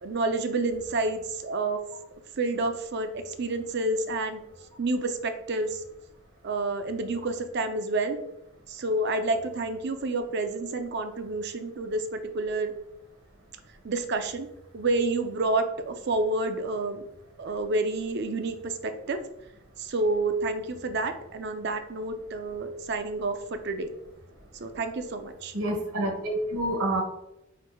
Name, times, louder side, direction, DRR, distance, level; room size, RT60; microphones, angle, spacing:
voice 1, 0.0-1.8 2.4-4.4 4.8-5.8 6.4-8.2 8.7-12.7 13.8-14.5 14.7-17.0 17.4-19.2 19.8-23.9 24.6-25.5, right 2 dB, 55° right, 7 dB, 0.5 m, -29 dB
voice 2, 25.5-27.0, right 1 dB, 85° right, 2 dB, 1.2 m, -28 dB
4.9 x 4.6 x 2.3 m, 0.85 s
head